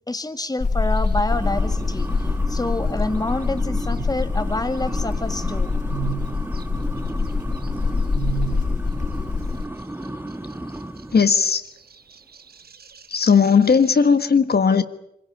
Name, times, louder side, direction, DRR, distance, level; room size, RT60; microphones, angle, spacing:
voice 1, 0.1-2.1 2.5-5.7, left 2 dB, 20° left, 1.7 m, -27 dB
sound 1, 0.6-9.7, left 4 dB, 45° left, 1.2 m, -24 dB
sound 2, 0.8-2.3 3.3-5.0 5.4-8.8 9.1-9.2 9.8-14.2, right 12 dB, 60° right, 1.2 m, -37 dB
sound 3, 1.3-11.3, right 1 dB, 10° right, 1.2 m, -34 dB
voice 2, 11.1-11.7 13.1-14.8, left 6 dB, 65° left, 1.5 m, -17 dB
25.0 x 17.0 x 9.9 m
wide cardioid pair, 75°, 18 cm